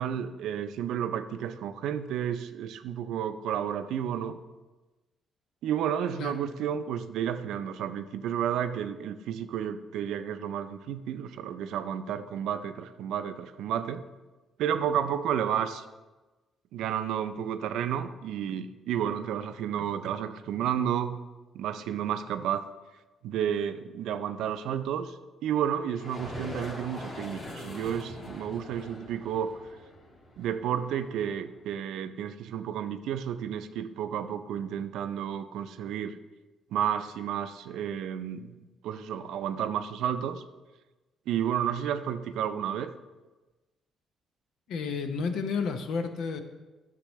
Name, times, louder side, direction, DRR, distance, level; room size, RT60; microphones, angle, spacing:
voice 1, 0.0-4.4 5.6-14.0 14.6-15.8 16.7-21.2 21.5-22.6 23.2-25.2 25.4-29.5 30.4-36.2 36.7-38.6 38.8-40.4 41.3-42.9, right 9 dB, 85° right, 10 dB, 0.4 m, -31 dB
sound 1, 25.9-31.5, left 1 dB, 60° left, 2.2 m, -43 dB
voice 2, 44.7-46.4, left 5 dB, 80° left, 7 dB, 0.7 m, -31 dB
10.0 x 6.6 x 3.1 m, 1.2 s
cardioid pair, 90°, 0 cm